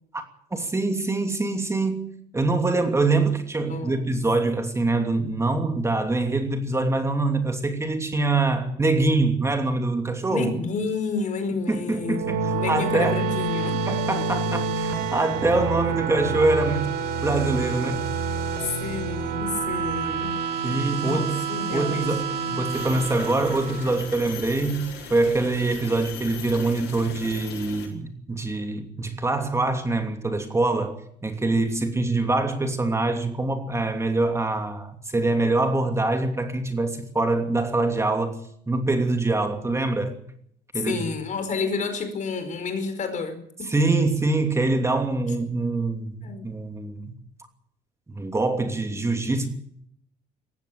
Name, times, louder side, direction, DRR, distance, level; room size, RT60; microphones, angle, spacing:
voice 1, 0.5-10.5 11.7-13.2 13.9-16.9 17.2-18.0 20.6-21.4 21.7-31.0 31.2-38.3 38.7-40.1 40.7-41.0 43.7-47.1 48.1-49.5, right 2 dB, 15° right, 2.8 m, -24 dB
voice 2, 3.7-4.1 10.3-13.8 17.2-17.6 18.6-20.3 21.0-22.2 40.8-43.7 46.2-46.5, left 4 dB, 45° left, 4.8 m, -30 dB
sound 1, 11.9-24.3, right 4 dB, 85° right, 4.6 m, -28 dB
sound 2, 22.7-27.9, left 6 dB, 90° left, 7.9 m, -39 dB
19.5 x 15.5 x 8.7 m
cardioid pair, 110°, 17 cm